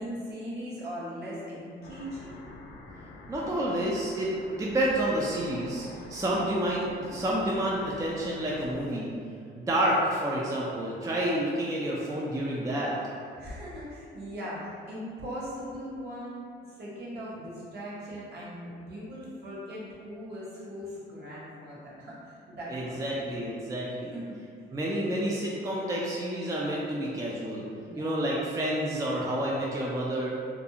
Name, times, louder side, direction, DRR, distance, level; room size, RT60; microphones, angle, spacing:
voice 1, 0.0-2.5 12.4-13.1 13.4-23.6 24.1-24.2 27.8-28.3, equal, 55° right, -7 dB, 0.9 m, -40 dB
sound 1, 1.8-8.8, left 2 dB, 65° left, 0.4 m, -46 dB
voice 2, 3.3-9.1 9.6-12.9 22.7-24.1 24.7-27.6 28.0-30.4, right 1 dB, 15° right, -4 dB, 0.3 m, -29 dB
2.5 x 2.2 x 2.7 m, 2.3 s
cardioid pair, 90°, 20 cm